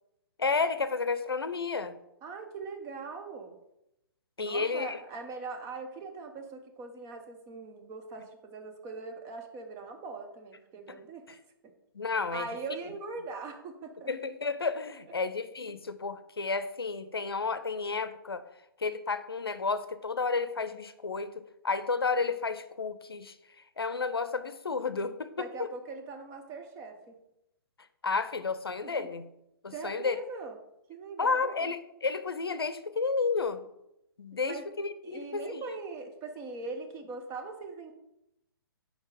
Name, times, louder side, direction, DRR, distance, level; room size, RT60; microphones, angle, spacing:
voice 1, 0.4-1.9 4.4-5.0 11.9-12.5 14.1-18.4 18.8-21.3 21.6-23.3 23.8-25.3 25.6-25.7 28.0-29.2 29.6-30.2 31.2-33.7 34.2-35.6, left 4 dB, 85° left, 12 dB, 0.5 m, -31 dB
voice 2, 2.2-3.6 4.4-11.4 11.6-11.7 12.3-14.1 15.1-15.2 15.7-15.8 25.4-27.1 28.8-29.1 29.7-30.6 30.9-31.7 34.4-34.7 35.0-37.9, right 4 dB, 25° right, 5 dB, 0.8 m, -41 dB
4.6 x 4.5 x 4.8 m, 0.85 s
figure-of-eight pair, 125°, 12 cm